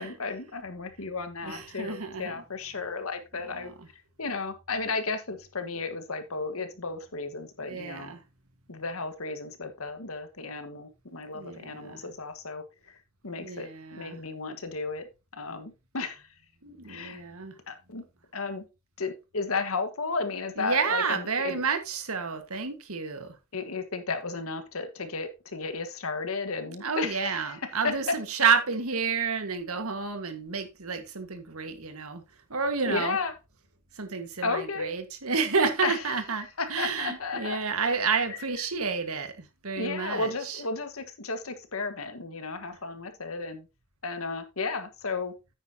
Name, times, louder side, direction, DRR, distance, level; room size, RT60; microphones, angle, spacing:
voice 1, 0.0-3.7 4.2-8.1 8.7-13.0 13.2-15.1 15.3-16.3 16.9-17.2 17.7-18.0 18.3-18.6 19.0-21.6 23.5-27.6 27.8-28.5 32.9-33.3 34.4-34.9 35.8-36.0 36.6-37.6 38.3-38.4 39.8-43.7 44.0-45.3, left 4 dB, 70° left, 1.5 m, -33 dB
voice 2, 1.4-2.4 3.4-3.7 7.6-8.2 11.3-12.0 13.4-14.2 16.6-17.6 20.6-23.4 26.8-32.2 32.5-33.2 34.0-40.6, right 5 dB, 75° right, 1.7 m, -30 dB
9.3 x 9.1 x 2.8 m
head